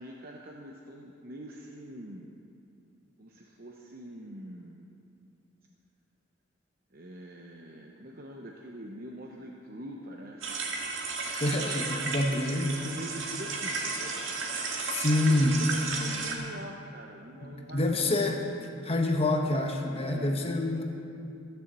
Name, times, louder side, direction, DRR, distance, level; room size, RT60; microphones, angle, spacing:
voice 1, 0.0-2.3 3.2-4.8 6.9-10.7 12.1-14.2 14.6-18.2 20.0-20.4, right 1 dB, 50° right, 0 dB, 0.9 m, -44 dB
sound 1, 10.4-16.4, right 4 dB, 90° right, 1.7 m, -34 dB
voice 2, 11.3-12.8 14.9-15.6 17.4-18.4 18.8-20.8, left 2 dB, 30° left, 2 dB, 1.0 m, -27 dB
14.5 x 7.0 x 7.5 m, 2.5 s
head